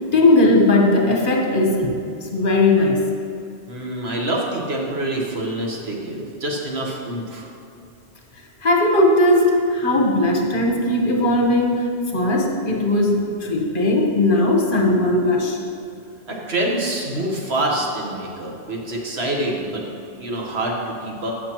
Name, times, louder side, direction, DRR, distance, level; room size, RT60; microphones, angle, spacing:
voice 1, 0.1-2.0 2.3-3.0 8.6-15.6, left 2 dB, 50° left, 0 dB, 1.2 m, -18 dB
voice 2, 3.7-7.5 16.3-19.8 20.2-21.3, right 1 dB, 65° right, -1 dB, 1.5 m, -26 dB
14.5 x 6.8 x 3.0 m, 2.6 s
omnidirectional pair, 1.1 m